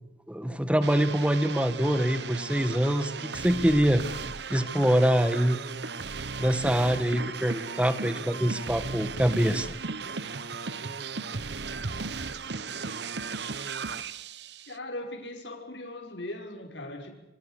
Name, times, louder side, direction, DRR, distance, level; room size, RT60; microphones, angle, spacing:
voice 1, 0.3-4.0 4.5-5.6 6.4-9.7, equal, 5° right, 1.7 m, -24 dB
sound 1, 0.8-14.8, right 4 dB, 65° right, 1.1 m, -36 dB
voice 2, 14.7-17.1, left 1 dB, 70° left, 5.9 m, -39 dB
29.0 x 24.5 x 6.6 m
head